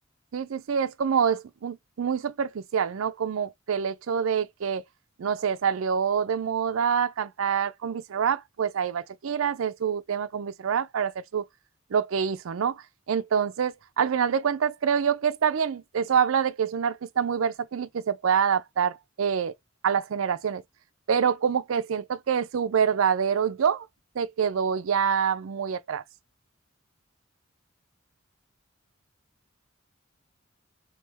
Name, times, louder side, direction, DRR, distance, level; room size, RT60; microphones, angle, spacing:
voice 1, 0.3-4.8 5.2-11.4 11.9-19.5 19.8-20.6 21.1-23.9 24.2-26.0, right 7 dB, 75° right, 0.4 m, -26 dB
3.2 x 3.1 x 3.4 m
head